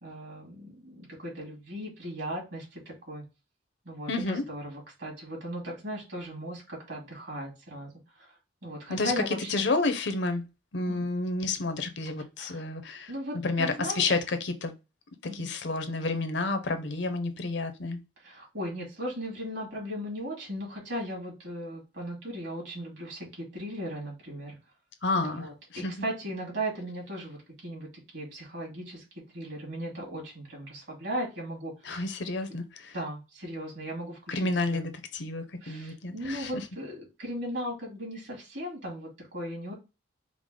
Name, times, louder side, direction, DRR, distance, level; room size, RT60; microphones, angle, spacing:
voice 1, 0.0-3.2 3.8-9.6 10.9-11.0 12.4-12.6 13.1-14.1 15.2-15.5 18.2-24.5 25.2-29.0 29.3-32.0 32.9-34.8 35.6-39.7, equal, 65° right, 2.2 m, -37 dB
voice 2, 4.1-4.4 8.9-9.1 9.5-10.5 10.7-13.1 13.4-14.7 15.3-18.0 25.0-25.9 31.8-32.9 34.3-36.5, left 3 dB, 65° left, 0.6 m, -30 dB
4.8 x 2.0 x 3.7 m
head